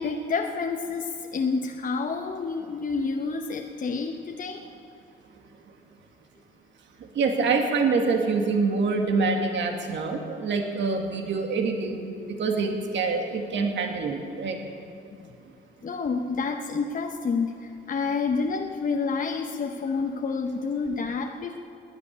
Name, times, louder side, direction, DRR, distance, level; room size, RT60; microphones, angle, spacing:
voice 1, 0.0-4.6 15.8-21.6, left 4 dB, 45° left, 3 dB, 0.9 m, -29 dB
voice 2, 7.2-12.1 12.4-14.6, right 4 dB, 65° right, 3 dB, 1.8 m, -25 dB
12.5 x 9.7 x 9.8 m, 2.6 s
cardioid pair, 90°, 20 cm